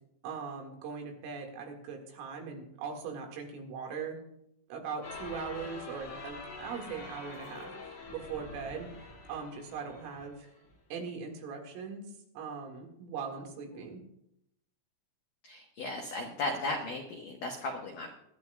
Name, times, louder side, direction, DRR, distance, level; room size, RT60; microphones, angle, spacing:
voice 1, 0.2-4.2 4.7-10.5 10.9-12.0 12.4-14.0, right 5 dB, 80° right, 2 dB, 4.4 m, -40 dB
sound 1, 5.0-10.8, left 3 dB, 45° left, 2.6 m, -45 dB
voice 2, 15.4-18.1, left 2 dB, 85° left, 1 dB, 1.8 m, -36 dB
23.0 x 11.5 x 2.3 m, 0.78 s
omnidirectional pair, 5.7 m